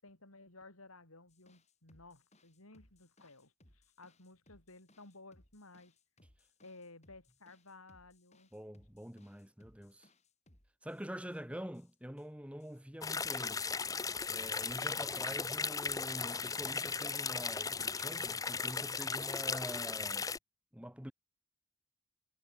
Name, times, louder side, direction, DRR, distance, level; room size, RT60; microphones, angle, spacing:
voice 1, 0.0-6.0 6.6-8.5, left 2 dB, 85° left, 6.3 m, -56 dB
sound 1, 1.3-11.4 11.7-12.3 12.6-13.1 14.1-15.5 15.8-16.9, left 1 dB, 30° left, 7.5 m, -68 dB
voice 2, 8.5-10.1 10.8-13.6 14.3-20.3 20.7-21.1, equal, 5° right, 1.8 m, -46 dB
sound 2, 13.0-20.4, left 5 dB, 15° left, 0.6 m, -37 dB
head